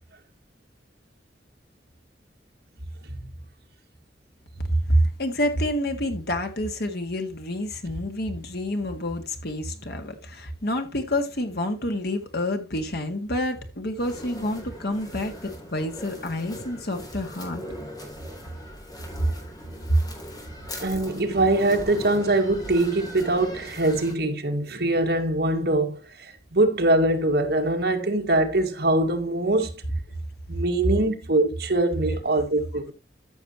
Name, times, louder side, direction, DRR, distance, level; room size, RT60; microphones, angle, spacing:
voice 1, 4.6-17.6 19.9-20.0, equal, 65° left, 2.0 m, -27 dB
sound 1, 14.0-24.1, equal, 25° left, 3.5 m, -40 dB
voice 2, 20.8-29.8 30.5-32.9, right 2 dB, 65° right, 2.0 m, -23 dB
13.5 x 6.7 x 3.0 m
head